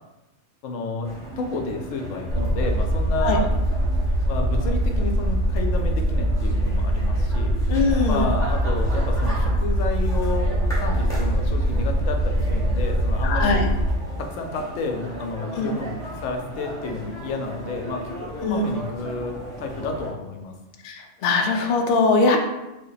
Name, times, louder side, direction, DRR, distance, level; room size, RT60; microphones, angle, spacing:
voice 1, 0.6-3.5 4.3-7.5 8.1-13.7 14.2-15.9 16.2-20.6, left 3 dB, 85° left, 3 dB, 0.9 m, -30 dB
sound 1, 1.0-20.1, right 1 dB, 5° left, 0.8 m, -37 dB
sound 2, 2.3-13.9, right 1 dB, 65° right, 0.7 m, -22 dB
voice 2, 7.7-8.2 13.2-13.7 15.5-15.7 18.3-18.6 20.8-22.4, left 3 dB, 60° left, 2 dB, 0.6 m, -21 dB
3.4 x 2.1 x 3.9 m, 1.0 s
omnidirectional pair, 1.3 m